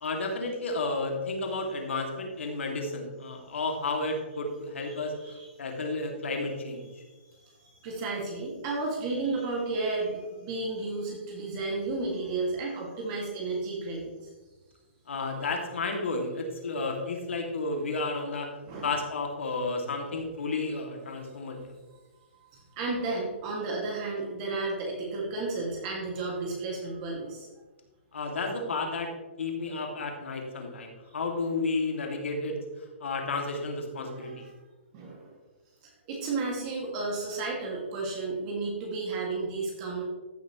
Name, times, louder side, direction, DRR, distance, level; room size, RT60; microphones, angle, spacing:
voice 1, 0.0-6.8 15.1-18.5 18.8-21.7 28.1-29.1 29.4-32.6 33.0-34.5, left 3 dB, 85° left, 2 dB, 2.4 m, -32 dB
voice 2, 6.9-14.3 18.7-18.9 21.3-21.6 22.3-27.5 34.1-34.5 34.9-35.4 35.8-40.0, right 3 dB, 35° right, -2 dB, 2.2 m, -33 dB
14.5 x 6.4 x 3.1 m, 1.2 s
hypercardioid pair, 150°, 6 cm